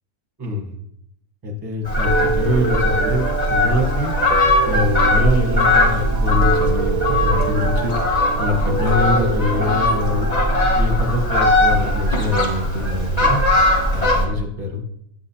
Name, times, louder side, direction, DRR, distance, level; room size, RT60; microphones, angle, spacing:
voice 1, 0.4-0.7 1.4-4.2 4.6-7.9 8.4-10.3 10.8-13.4 13.9-14.8, left 2 dB, 15° right, 1 dB, 0.8 m, -24 dB
Fowl, 1.8-14.3, left 1 dB, 25° left, 1.0 m, -19 dB
Piano, 2.1-10.8, right 6 dB, 70° right, 0.8 m, -27 dB
8.4 x 6.0 x 2.8 m, 0.74 s
omnidirectional pair, 1.9 m